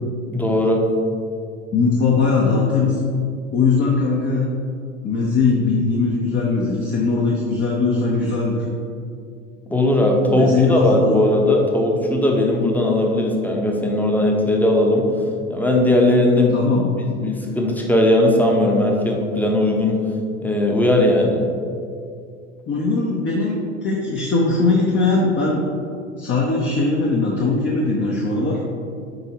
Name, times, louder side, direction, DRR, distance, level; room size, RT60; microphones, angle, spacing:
voice 1, 0.3-0.8 9.7-15.0 15.5-16.7 17.1-20.0 20.4-21.4, left 1 dB, 5° left, 0 dB, 0.9 m, -18 dB
voice 2, 1.7-3.0 3.5-4.4 5.0-8.7 10.3-11.2 16.5-16.9 22.7-25.6 26.2-28.6, left 4 dB, 30° left, -3 dB, 0.9 m, -20 dB
7.8 x 4.5 x 3.0 m, 2.3 s
hypercardioid pair, 80°, 37 cm